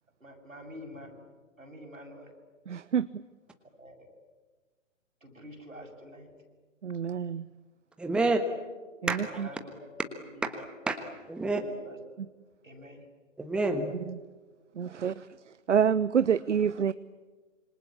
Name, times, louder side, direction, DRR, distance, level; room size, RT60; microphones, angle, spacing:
voice 1, 0.2-1.3 1.6-2.3 3.8-4.1 5.2-6.3 8.2-8.3 9.0-9.8 10.3-10.6 11.6-12.0 12.6-13.0, equal, 85° right, 2 dB, 7.1 m, -47 dB
voice 2, 2.7-3.1 6.8-7.5 14.8-15.3 15.7-16.9, right 7 dB, 65° right, 16 dB, 0.8 m, -26 dB
voice 3, 8.0-8.4 9.1-9.4 10.5-11.6 13.4-13.9, right 2 dB, ahead, 6 dB, 1.3 m, -29 dB
27.0 x 26.0 x 8.6 m, 1.3 s
figure-of-eight pair, 130°, 39 cm